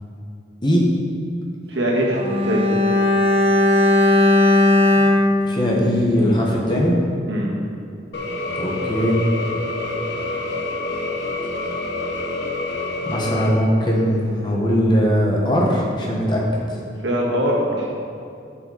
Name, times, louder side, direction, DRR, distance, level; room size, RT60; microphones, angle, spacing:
voice 1, 1.7-2.7 7.3-7.5 17.0-17.9, equal, 80° right, -3 dB, 1.7 m, -22 dB
Bowed string instrument, 2.1-6.5 6.8-7.0, left 2 dB, 35° right, 1.1 m, -17 dB
voice 2, 5.4-6.9 8.6-9.1 13.1-16.4, equal, 25° left, -2 dB, 1.3 m, -20 dB
sound 1, 8.1-13.5, left 2 dB, 75° left, 0.9 m, -27 dB
10.5 x 5.8 x 4.1 m, 2.5 s
head